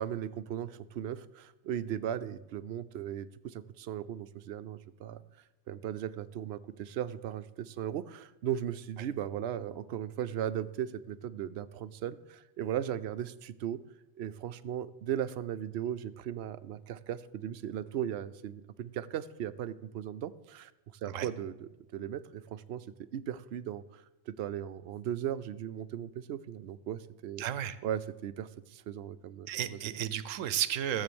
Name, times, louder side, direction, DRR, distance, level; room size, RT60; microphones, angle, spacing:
voice 1, 0.0-5.2 5.7-13.8 14.2-20.7 21.0-22.9 23.1-27.5 27.8-29.9, right 10 dB, 65° right, 14 dB, 0.8 m, -37 dB
voice 2, 27.4-27.8 29.5-31.0, right 11 dB, 85° right, 14 dB, 1.0 m, -33 dB
16.0 x 7.4 x 7.0 m, 1.0 s
omnidirectional pair, 1.3 m